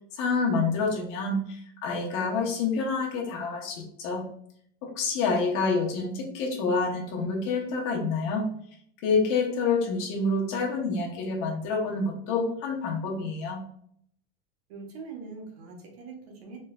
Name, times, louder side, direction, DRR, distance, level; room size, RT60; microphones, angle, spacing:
voice 1, 0.1-4.3 4.8-8.5 9.0-13.6, left 4 dB, 45° left, -1 dB, 1.0 m, -27 dB
voice 2, 14.7-16.6, right 4 dB, 90° right, 0 dB, 1.1 m, -42 dB
3.4 x 3.2 x 2.3 m, 0.66 s
supercardioid pair, 145°, 30 cm